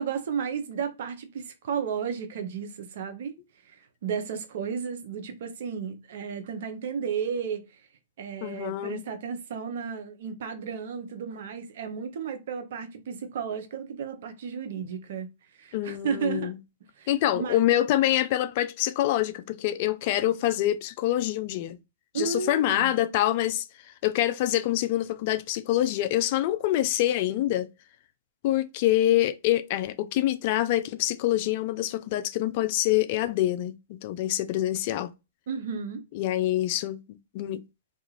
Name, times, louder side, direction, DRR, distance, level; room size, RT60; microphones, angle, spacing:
voice 1, 0.0-3.3 3.7-7.6 8.2-15.3 15.6-16.5 17.0-17.6 22.1-22.9 35.5-36.0, right 6 dB, 60° right, 0.7 m, -33 dB
voice 2, 8.4-9.0 15.7-16.6 17.1-21.8 22.1-23.7 24.0-27.7 28.4-35.1 36.1-37.0 37.3-37.6, left 13 dB, 45° left, 0.3 m, -25 dB
2.4 x 2.4 x 2.9 m
hypercardioid pair, 120°, 0 cm